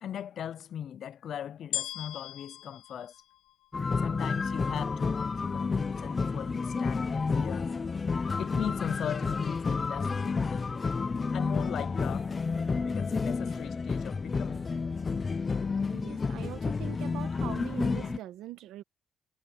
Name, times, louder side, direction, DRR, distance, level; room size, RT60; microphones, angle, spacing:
voice 1, 0.0-3.2 4.0-7.8 8.4-10.7 11.3-12.3 12.8-14.7, left 9 dB, 65° left, 0.6 m, -39 dB
sound 1, 1.7-4.1 4.8-4.9, left 13 dB, 90° left, 1.7 m, -39 dB
sound 2, 3.7-18.2, left 4 dB, 35° left, 0.9 m, -30 dB
voice 2, 15.9-18.8, right 14 dB, 85° right, 1.5 m, -42 dB
cardioid pair, 90°, 0 cm